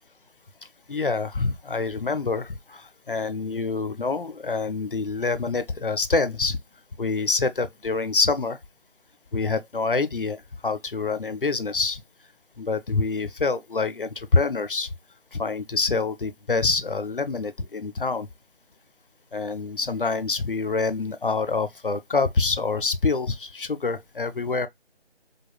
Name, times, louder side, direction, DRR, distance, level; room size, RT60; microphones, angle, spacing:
voice 1, 0.9-6.6 7.0-8.6 9.3-12.0 12.6-14.9 15.3-18.3 19.3-24.7, left 4 dB, 55° left, 0.5 m, -26 dB
5.0 x 2.1 x 2.3 m
figure-of-eight pair, 165°, 33 cm